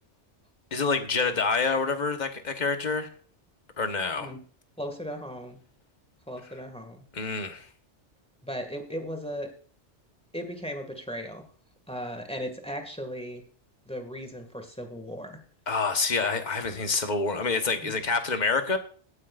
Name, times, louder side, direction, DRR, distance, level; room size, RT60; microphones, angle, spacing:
voice 1, 0.7-3.1 3.8-4.3 7.1-7.7 15.7-18.8, left 4 dB, 40° left, 6 dB, 1.4 m, -27 dB
voice 2, 4.8-5.6 6.3-7.1 8.4-9.5 10.3-11.4 11.9-13.4 13.9-15.4 17.8-18.0, equal, 5° left, 5 dB, 1.9 m, -37 dB
17.0 x 9.8 x 2.5 m, 0.44 s
omnidirectional pair, 1.2 m